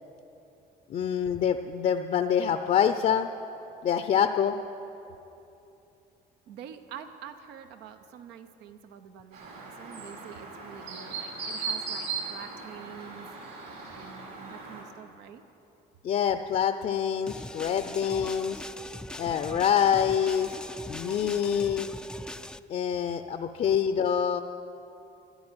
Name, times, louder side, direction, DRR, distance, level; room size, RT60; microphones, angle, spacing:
voice 1, 0.9-3.3 3.8-4.6 16.0-18.6 19.1-20.6 20.9-21.9 22.7-24.4, left 8 dB, 50° left, 8 dB, 0.6 m, -26 dB
voice 2, 6.5-13.3 13.9-15.4, right 8 dB, 90° right, 9 dB, 0.9 m, -46 dB
Chirp tweet, 9.3-14.8, right 4 dB, 70° right, 4.6 m, -38 dB
sound 1, 17.3-22.6, left 1 dB, 5° left, 0.3 m, -41 dB
13.0 x 10.0 x 9.7 m, 2.9 s
cardioid pair, 110°, 17 cm